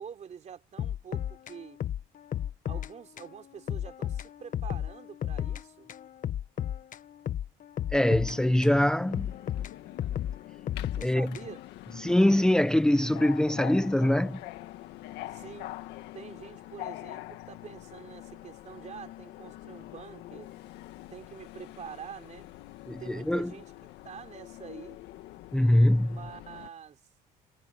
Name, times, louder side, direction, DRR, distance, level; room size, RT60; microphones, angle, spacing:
voice 1, 0.0-1.8 2.6-5.9 10.9-11.6 15.3-15.7 16.1-20.5 21.1-22.5 23.0-23.7 24.0-25.0 26.1-27.0, right 7 dB, 45° right, 3.5 m, -46 dB
sound 1, 0.8-2.9 3.2-3.3 3.7-5.6 5.9-8.8 9.1-11.7, left 10 dB, 50° left, 1.2 m, -34 dB
Subway metro underground, 7.9-26.7, left 16 dB, 90° left, 2.0 m, -45 dB
voice 2, 7.9-9.3 11.0-11.3 12.0-14.4 22.9-23.5 25.5-26.2, left 1 dB, 5° left, 0.9 m, -23 dB
cardioid pair, 110°, 17 cm